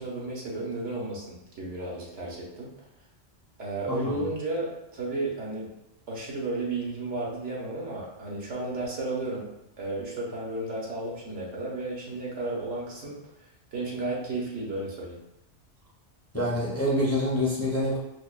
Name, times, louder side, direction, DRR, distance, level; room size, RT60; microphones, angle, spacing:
voice 1, 0.0-2.7 3.6-5.7 6.1-9.5 9.8-13.2 13.7-15.2, right 2 dB, 85° right, -4 dB, 1.3 m, -33 dB
voice 2, 3.9-4.2 16.3-18.0, left 1 dB, 20° left, -5 dB, 0.5 m, -26 dB
4.9 x 2.2 x 2.4 m, 0.91 s
omnidirectional pair, 1.2 m